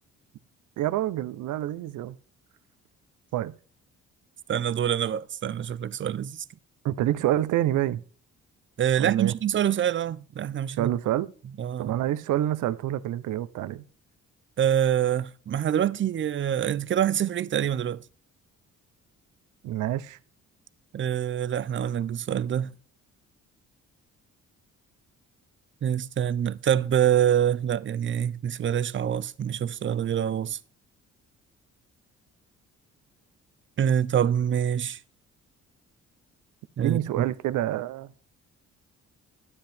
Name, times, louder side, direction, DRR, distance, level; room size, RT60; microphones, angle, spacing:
voice 1, 0.8-2.2 3.3-3.5 6.8-8.0 9.0-9.3 10.8-11.3 11.8-13.8 19.6-20.2 36.8-38.1, right 13 dB, 80° right, 0.7 m, -27 dB
voice 2, 4.5-6.4 8.8-10.9 11.6-11.9 14.6-18.0 20.9-22.7 25.8-30.6 33.8-35.0 36.8-37.3, right 9 dB, 40° right, 0.6 m, -25 dB
12.0 x 9.9 x 3.4 m
cardioid pair, 90°, 30 cm